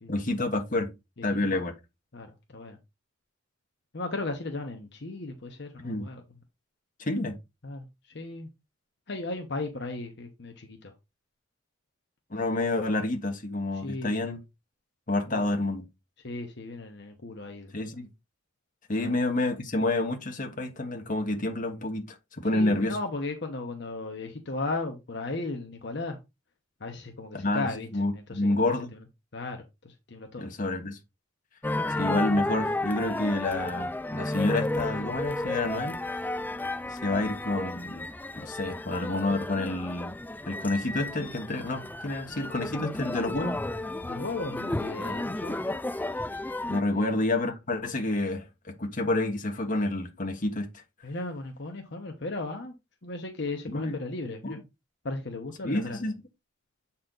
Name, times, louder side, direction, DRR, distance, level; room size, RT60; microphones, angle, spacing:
voice 1, 0.1-0.9 1.2-1.7 5.8-6.1 7.0-7.4 12.3-14.4 15.1-15.9 17.7-18.1 18.9-23.0 27.3-28.9 30.4-31.0 32.0-36.2 36.9-38.1 38.4-40.1 40.5-43.6 46.7-48.5 48.8-50.7 53.7-54.0 54.4-54.6 55.6-56.1, left 2 dB, 40° left, 1.3 m, -29 dB
voice 2, 2.1-2.8 3.9-6.2 7.6-7.8 8.1-8.5 9.1-10.9 13.7-14.3 15.3-15.4 16.2-17.8 19.0-19.1 22.5-26.2 26.8-27.9 28.1-28.7 29.3-29.6 29.8-30.5 37.1-37.3 44.0-45.6 46.9-47.2 51.0-52.7 53.0-54.6 55.0-56.0, left 2 dB, 60° left, 1.0 m, -36 dB
sound 1, 31.6-46.8, left 2 dB, 10° left, 0.3 m, -33 dB
7.7 x 4.3 x 3.9 m
head